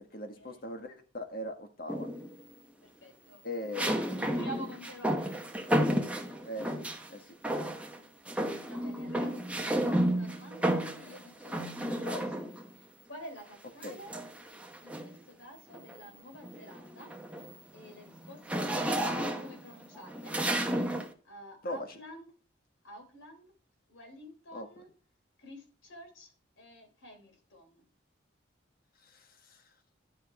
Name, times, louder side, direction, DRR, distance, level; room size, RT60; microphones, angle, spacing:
voice 1, 0.1-2.1 3.4-4.5 6.4-7.7 12.0-12.3 13.8-14.0 21.6-22.0 24.5-24.7 29.0-29.6, left 1 dB, 50° left, 6 dB, 1.5 m, -41 dB
sound 1, 1.9-2.4 3.7-7.1 7.4-8.0 8.3-12.7 13.8-15.2 15.7-16.0 16.3-21.1, right 1 dB, 5° right, 1.1 m, -32 dB
voice 2, 2.8-5.5 7.9-8.1 8.6-12.5 12.7-14.1 14.8-17.1 17.7-20.4 21.2-22.3 22.8-23.5 23.9-24.9 25.4-27.9, equal, 85° left, 3 dB, 3.6 m, -50 dB
12.0 x 5.1 x 4.9 m, 0.40 s
head